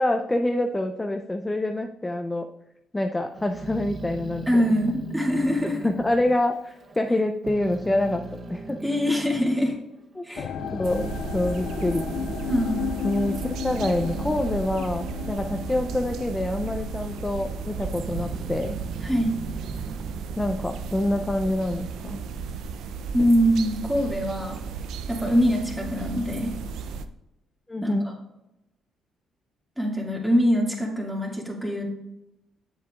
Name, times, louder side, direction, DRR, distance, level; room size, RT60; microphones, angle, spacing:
voice 1, 0.0-2.5 2.9-4.6 5.6-8.8 10.2-12.0 13.0-18.8 20.4-22.2 27.7-28.1, left 1 dB, 15° left, 5 dB, 0.5 m, -26 dB
Growling, 3.4-7.1 7.4-9.8 10.3-16.2 16.5-17.2 17.7-21.4, right 3 dB, 45° right, 0.8 m, -39 dB
voice 2, 4.5-5.8 8.8-9.7 10.2-10.5 12.5-13.1 19.0-19.4 23.1-24.6 25.1-26.5 27.8-28.1 29.8-31.8, equal, 5° right, -1 dB, 2.2 m, -24 dB
sound 1, 10.4-21.5 21.8-22.4 23.0-23.1, left 9 dB, 75° left, 0.3 m, -36 dB
sound 2, 10.8-27.1, right 6 dB, 80° right, 0.5 m, -34 dB
8.3 x 7.3 x 2.4 m, 0.88 s
cardioid pair, 90°, 0 cm